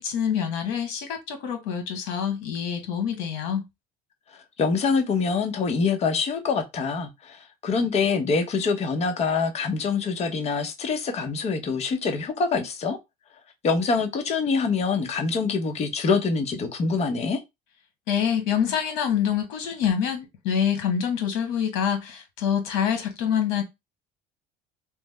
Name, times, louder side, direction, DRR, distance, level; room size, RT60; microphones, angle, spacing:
voice 1, 0.0-3.6 18.1-23.6, left 8 dB, 85° left, 1.0 m, -26 dB
voice 2, 4.6-13.0 13.6-17.4, left 4 dB, 40° left, 0.7 m, -25 dB
3.2 x 2.0 x 3.2 m
cardioid pair, 115°, 18 cm